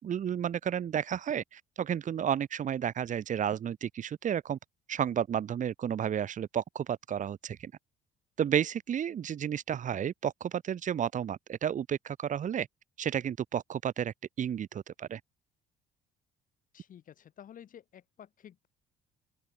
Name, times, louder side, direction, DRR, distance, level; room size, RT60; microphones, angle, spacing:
voice 1, 0.0-4.6 4.9-7.7 8.4-12.7 13.0-15.2, right 9 dB, 50° right, 3.1 m, -32 dB
voice 2, 16.7-18.7, left 9 dB, 55° left, 7.1 m, -52 dB
open air
cardioid pair, 110°, 17 cm